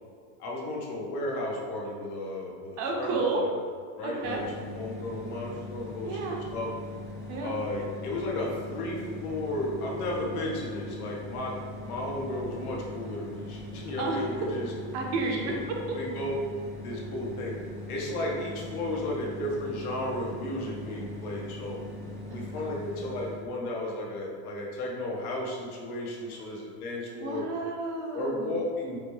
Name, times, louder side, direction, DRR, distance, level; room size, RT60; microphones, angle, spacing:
voice 1, 0.4-3.5 3.9-6.7 7.4-11.6 11.8-14.7 15.4-15.6 15.9-16.3 16.7-17.5 17.9-21.8 22.3-27.4 28.1-29.0, left 1 dB, 90° left, -3 dB, 1.1 m, -34 dB
voice 2, 2.8-3.4 4.0-4.5 6.0-6.4 7.3-7.6 14.0-14.2 14.9-16.0 22.3-23.0 27.1-28.6, right 3 dB, 40° right, 1 dB, 0.6 m, -32 dB
sound 1, 4.2-23.5, left 1 dB, 5° left, 0.4 m, -41 dB
4.8 x 2.2 x 3.1 m, 2.1 s
supercardioid pair, 135°, 43 cm